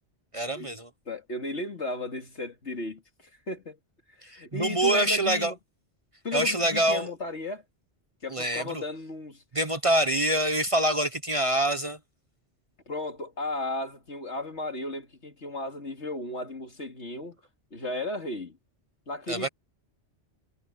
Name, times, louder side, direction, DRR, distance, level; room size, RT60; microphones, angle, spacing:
voice 1, 0.3-0.9 4.3-5.5 6.3-7.1 8.3-8.8 9.5-12.0 19.3-19.5, right 1 dB, 30° right, 0.9 m, -25 dB
voice 2, 1.1-3.8 4.3-5.6 6.2-7.6 8.2-9.4 12.9-17.4 17.7-18.6 19.1-19.5, left 2 dB, 75° left, 2.9 m, -35 dB
omnidirectional pair, 1.2 m